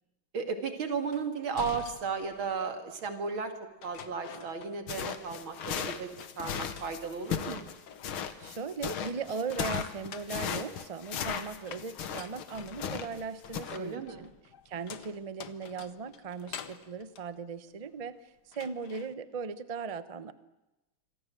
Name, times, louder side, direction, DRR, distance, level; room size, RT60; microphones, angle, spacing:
voice 1, 0.3-3.5 3.8-6.1 6.4-7.6 13.7-14.3, right 5 dB, 70° right, 7 dB, 3.2 m, -34 dB
sound 1, 1.1-2.8 3.8-5.1 5.4-7.3 7.6-8.4 9.8-18.1 18.5-19.1, left 8 dB, 55° left, 1.6 m, -48 dB
sound 2, 4.9-13.2 13.5-13.8, left 8 dB, 80° left, 2.2 m, -36 dB
voice 2, 8.4-14.3 14.6-18.1 18.5-20.3, right 5 dB, 30° right, 13 dB, 0.6 m, -38 dB
26.5 x 24.5 x 7.7 m, 0.99 s
omnidirectional pair, 2.3 m